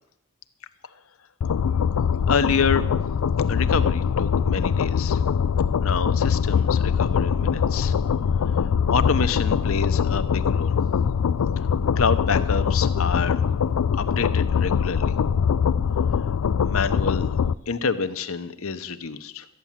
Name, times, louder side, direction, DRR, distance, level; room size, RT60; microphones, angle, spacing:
sound 1, 1.4-17.5, left 7 dB, 85° left, 0.4 m, -22 dB
voice 1, 2.3-2.8 3.5-5.2 5.8-7.9 8.9-10.8 11.9-13.4 14.0-15.2 16.6-17.3 17.7-19.5, left 5 dB, 65° left, 11 dB, 0.8 m, -27 dB
13.5 x 9.5 x 7.3 m, 0.87 s
head